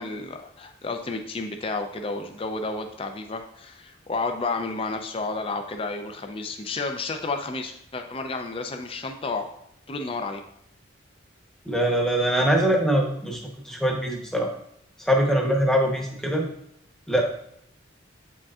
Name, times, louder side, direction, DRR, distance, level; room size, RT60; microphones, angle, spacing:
voice 1, 0.0-9.5 9.9-10.4, left 3 dB, 25° left, 5 dB, 0.4 m, -31 dB
voice 2, 11.7-13.4 13.6-14.5 15.1-16.5 17.1-17.2, right 1 dB, 5° left, 0 dB, 0.9 m, -22 dB
8.6 x 5.0 x 2.4 m, 0.73 s
head